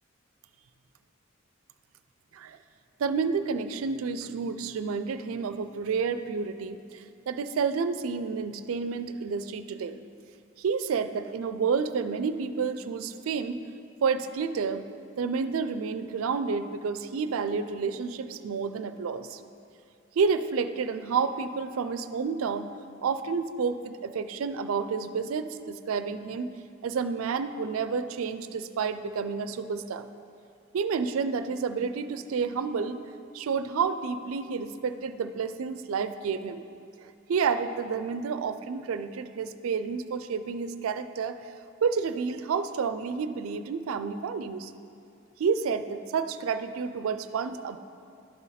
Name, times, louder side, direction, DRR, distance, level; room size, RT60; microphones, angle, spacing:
voice 1, 3.0-10.0 10.6-13.6 14.0-14.9 15.2-19.4 20.2-22.7 23.0-26.5 26.8-30.1 30.7-33.0 33.3-36.6 37.0-41.4 41.8-44.7 45.4-47.8, right 5 dB, 90° right, 11 dB, 0.4 m, -30 dB
11.5 x 4.1 x 4.0 m, 2.4 s
head